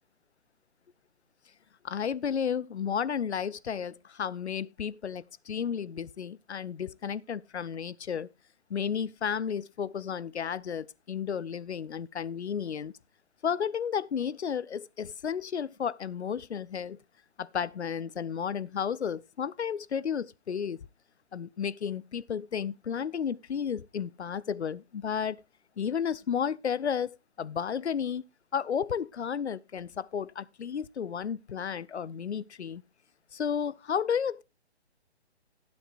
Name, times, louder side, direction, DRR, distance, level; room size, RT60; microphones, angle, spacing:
voice 1, 1.8-8.3 8.7-12.9 13.4-17.0 17.4-20.8 21.3-25.4 25.8-28.2 28.5-32.8 33.3-34.4, left 7 dB, 80° left, 0.6 m, -32 dB
15.0 x 8.5 x 2.4 m
figure-of-eight pair, 140°, 33 cm